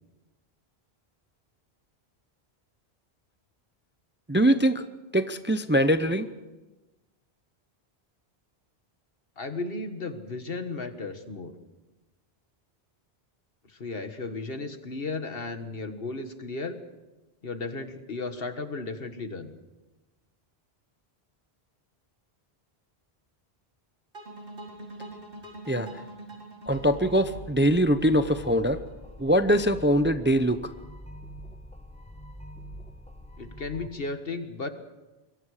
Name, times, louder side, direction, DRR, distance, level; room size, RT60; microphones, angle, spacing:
voice 1, 4.3-4.8 5.1-6.3 25.7-26.0 26.7-28.8 29.2-30.6, equal, 15° right, 10 dB, 0.6 m, -22 dB
voice 2, 9.4-11.5 13.7-16.8 17.4-19.5 33.4-34.7, left 3 dB, 65° left, 8 dB, 1.8 m, -34 dB
sound 1, 24.1-29.2, right 2 dB, 60° right, 4.3 m, -44 dB
sound 2, 26.7-33.9, equal, 5° left, 1.5 m, -44 dB
25.5 x 22.5 x 5.0 m, 1.1 s
omnidirectional pair, 1.1 m